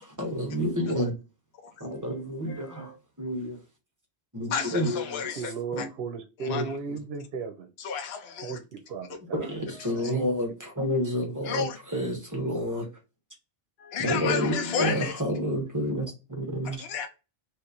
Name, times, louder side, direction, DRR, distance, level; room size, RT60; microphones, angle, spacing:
voice 1, 0.2-1.1 1.8-2.9 3.2-3.6 4.3-5.3 5.7-5.9 6.5-7.0 9.3-11.7 11.9-12.9 14.0-16.8, equal, 20° right, 1.0 m, -29 dB
voice 2, 2.5-2.9 4.5-5.9 6.4-6.7 7.8-8.6 9.7-10.1 11.4-11.8 13.9-15.2 16.8-17.1, left 6 dB, 75° left, 0.9 m, -32 dB
voice 3, 5.4-7.7 8.4-9.5 9.9-10.6, right 5 dB, 75° right, 0.8 m, -36 dB
3.2 x 3.0 x 2.5 m
omnidirectional pair, 1.1 m